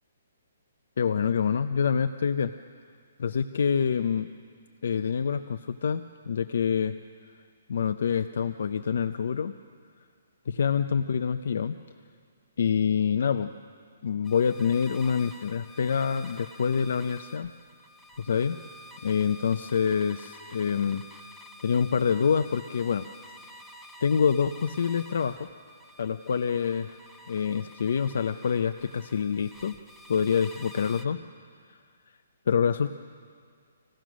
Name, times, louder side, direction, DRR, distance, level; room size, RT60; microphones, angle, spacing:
voice 1, 1.0-2.6 3.2-4.3 4.8-7.0 7.3-7.4 7.7-9.5 10.5-11.7 12.6-13.5 14.0-17.5 18.2-18.6 19.0-21.0 21.6-23.1 24.0-25.5 26.0-27.0 27.3-29.8 30.1-31.2 31.7-31.8 32.5-32.9, left 6 dB, 55° left, 9 dB, 0.5 m, -26 dB
sound 1, 14.2-31.1, left 1 dB, ahead, 0.6 m, -49 dB
26.5 x 16.5 x 6.2 m, 2.1 s
hypercardioid pair, 175°, 0 cm